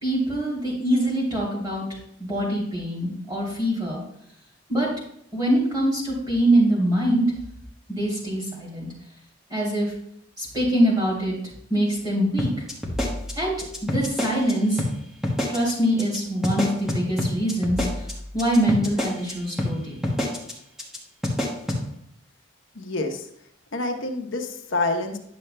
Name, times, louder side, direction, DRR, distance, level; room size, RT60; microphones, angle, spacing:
voice 1, 0.0-1.8 2.3-4.0 4.7-4.9 5.3-7.3 7.9-8.9 9.5-9.9 10.4-11.3 11.7-12.5 13.4-13.5 13.8-14.8 15.5-17.8 18.3-20.2, right 1 dB, 20° right, -5 dB, 2.8 m, -23 dB
sound 1, 12.4-14.5 14.8-14.9 15.2-15.7 16.0-16.2 16.4-19.3 19.6-19.7 20.0-20.5 20.8-21.0 21.2-21.8, left 1 dB, ahead, 1.1 m, -26 dB
voice 2, 22.8-23.2 23.7-25.2, left 2 dB, 75° left, 4 dB, 0.9 m, -27 dB
10.5 x 6.6 x 2.2 m, 0.71 s
head